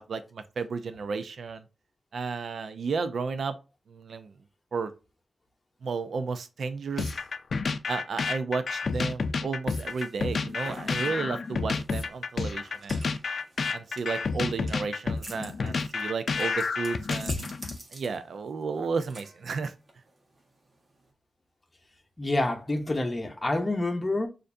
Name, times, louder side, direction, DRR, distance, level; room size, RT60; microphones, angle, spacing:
voice 1, 0.0-1.7 2.1-3.6 3.9-4.3 4.7-4.9 5.8-7.2 7.9-13.1 13.7-17.5 17.9-19.7, right 4 dB, 75° right, 0.5 m, -33 dB
sound 1, 7.0-17.8, left 4 dB, 65° left, 0.4 m, -30 dB
sound 2, 9.8-21.1, right 2 dB, 40° right, 1.3 m, -48 dB
voice 2, 22.2-24.3, left 2 dB, 25° left, 0.9 m, -27 dB
6.5 x 2.6 x 2.6 m
wide cardioid pair, 100°, 0 cm